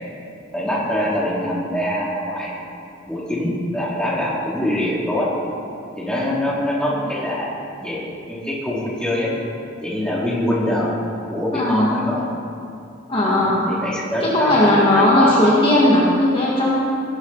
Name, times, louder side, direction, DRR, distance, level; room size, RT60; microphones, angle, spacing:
voice 1, 0.5-2.6 3.1-5.3 6.0-7.5 7.8-8.0 8.3-9.3 9.8-10.9 11.2-12.3 13.2-15.5, left 1 dB, 5° left, -6 dB, 2.8 m, -24 dB
voice 2, 11.5-11.9 13.1-13.7 14.2-16.7, left 1 dB, 25° left, -6 dB, 2.2 m, -16 dB
19.5 x 12.0 x 4.2 m, 2.5 s
head